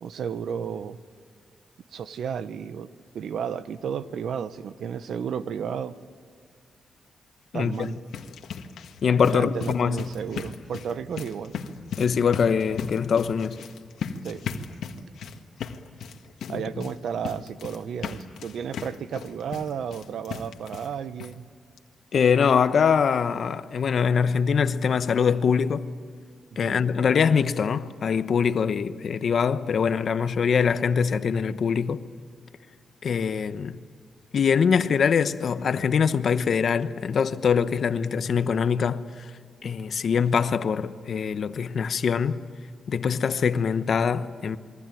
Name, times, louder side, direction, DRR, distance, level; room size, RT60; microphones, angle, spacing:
voice 1, 0.0-1.0 1.9-2.9 3.1-6.0 7.5-8.0 9.3-11.6 14.2-14.4 16.5-21.5 26.6-26.8, right 7 dB, 75° right, 1.0 m, -33 dB
voice 2, 7.5-7.9 9.0-10.1 12.0-13.6 16.5-16.9 22.1-25.8 26.6-32.0 33.0-33.8 34.3-39.3 39.6-42.4 42.9-44.6, left 6 dB, 60° left, 1.0 m, -23 dB
sound 1, 7.7-20.9 21.2-21.3 21.8-21.9 22.2-22.3, left 6 dB, 85° left, 1.8 m, -37 dB
28.0 x 22.5 x 9.2 m
cardioid pair, 105°, 0 cm